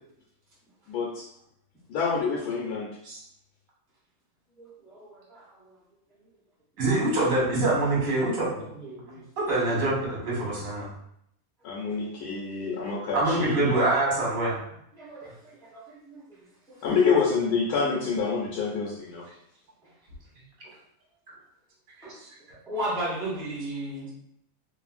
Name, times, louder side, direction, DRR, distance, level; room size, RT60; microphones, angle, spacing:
voice 1, 0.9-1.3 1.9-2.9 11.6-13.7 16.8-19.3, left 5 dB, 90° left, -3 dB, 1.1 m, -27 dB
voice 2, 4.6-5.8 6.8-7.6 8.3-9.2 14.9-16.2 16.8-17.0 19.8-19.9 22.0-22.2 22.7-24.1, right 1 dB, 5° left, -8 dB, 0.5 m, -36 dB
voice 3, 6.8-8.6 9.4-10.9 13.1-14.6, right 2 dB, 65° right, -4 dB, 1.3 m, -25 dB
2.7 x 2.5 x 2.4 m, 0.74 s
omnidirectional pair, 1.6 m